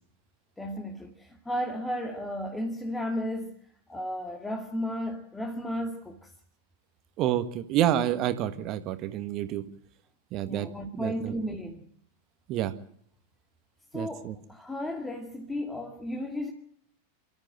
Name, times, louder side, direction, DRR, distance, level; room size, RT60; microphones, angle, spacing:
voice 1, 0.6-3.6 3.9-6.3 10.4-11.9 13.9-16.5, equal, 5° left, 2 dB, 2.2 m, -34 dB
voice 2, 7.2-9.6 10.3-10.7 11.0-11.3 12.5-12.7 13.9-14.3, right 11 dB, 35° right, 10 dB, 1.5 m, -28 dB
28.0 x 13.5 x 7.8 m, 0.66 s
figure-of-eight pair, 90°, 0 cm